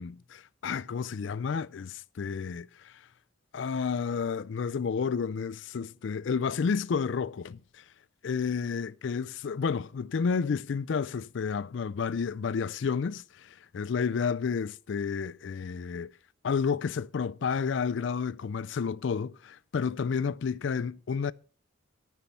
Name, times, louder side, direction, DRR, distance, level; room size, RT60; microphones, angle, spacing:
voice 1, 0.0-3.0 3.5-7.8 8.2-16.1 16.4-21.3, left 6 dB, 65° left, 0.4 m, -31 dB
13.0 x 6.1 x 5.6 m
head